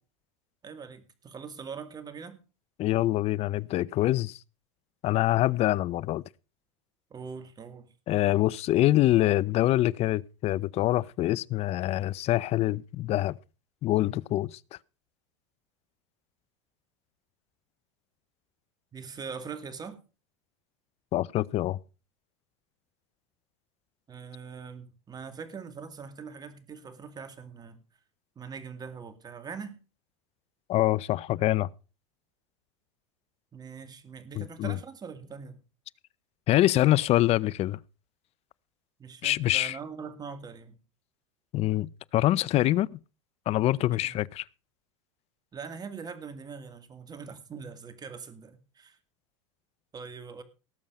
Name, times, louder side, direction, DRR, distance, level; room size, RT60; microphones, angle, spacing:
voice 1, 0.6-2.4 7.1-7.9 18.9-20.0 24.1-27.8 28.4-29.8 33.5-35.6 39.0-40.8 43.8-44.1 45.5-49.0 49.9-50.4, right 5 dB, 25° right, 2.3 m, -42 dB
voice 2, 2.8-4.4 5.0-6.2 8.1-13.4 13.8-14.6 21.1-21.8 30.7-31.7 34.4-34.8 36.5-37.8 39.2-39.8 41.5-43.0 43.5-44.4, left 15 dB, 40° left, 0.6 m, -25 dB
18.5 x 7.1 x 5.3 m
hypercardioid pair, 100°, 15 cm